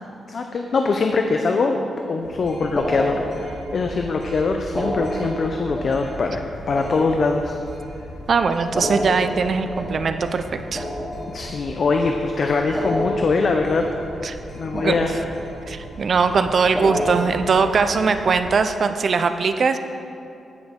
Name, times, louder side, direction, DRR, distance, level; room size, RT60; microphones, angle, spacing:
voice 1, 0.3-6.4 6.7-7.5 11.3-13.9 14.5-15.2, left 4 dB, 45° left, 4 dB, 0.5 m, -22 dB
sound 1, 2.2-18.5, equal, 85° left, 2.6 m, -39 dB
sound 2, 2.8-4.0 4.6-7.9 8.6-11.9 12.6-14.5 14.7-15.8 16.6-18.4, equal, 10° left, 2.3 m, -30 dB
voice 2, 8.3-10.9 14.2-14.4 14.7-15.1 15.7-19.8, right 5 dB, 45° right, 8 dB, 0.4 m, -21 dB
15.0 x 6.1 x 3.7 m, 2.7 s
wide cardioid pair, 155°, 0 cm